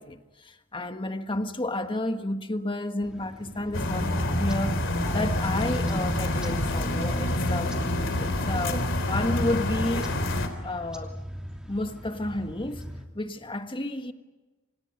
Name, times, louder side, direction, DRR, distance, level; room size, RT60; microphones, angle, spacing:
voice 1, 0.0-4.8 5.1-7.8 8.2-10.1 10.6-11.2 11.7-12.9 13.1-14.1, left 1 dB, 25° left, 1.5 m, -31 dB
sound 1, 3.0-13.1, equal, 5° right, 2.8 m, -41 dB
sound 2, 3.7-10.5, left 1 dB, 60° left, 3.6 m, -27 dB
28.5 x 27.5 x 5.4 m
head